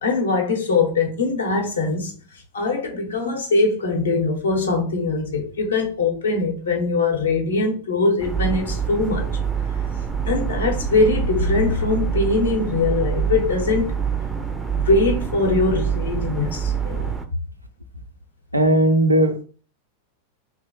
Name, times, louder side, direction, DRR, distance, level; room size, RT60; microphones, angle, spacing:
voice 1, 0.0-2.1 2.5-9.3 10.2-13.9 14.7-17.1, left 3 dB, 70° left, 0.8 m, -22 dB
sound 1, 8.2-17.3, right 7 dB, 10° right, 0.3 m, -26 dB
voice 2, 18.5-19.4, right 1 dB, 85° right, 0.3 m, -17 dB
2.8 x 2.0 x 2.9 m
figure-of-eight pair, 90°, 0 cm